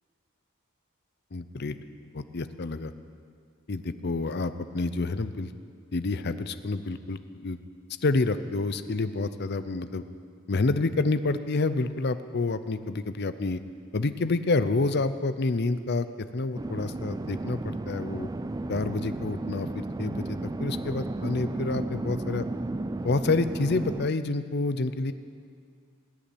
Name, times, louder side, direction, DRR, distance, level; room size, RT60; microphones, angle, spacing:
voice 1, 1.3-1.7 2.1-2.9 3.7-5.5 5.9-7.6 8.0-10.0 10.5-13.6 13.9-16.1 16.3-18.3 18.7-22.5 23.0-25.1, left 3 dB, 50° left, 12 dB, 0.6 m, -28 dB
sound 1, 16.5-24.1, right 2 dB, 20° right, 0.3 m, -33 dB
19.0 x 7.1 x 9.7 m, 2.2 s
head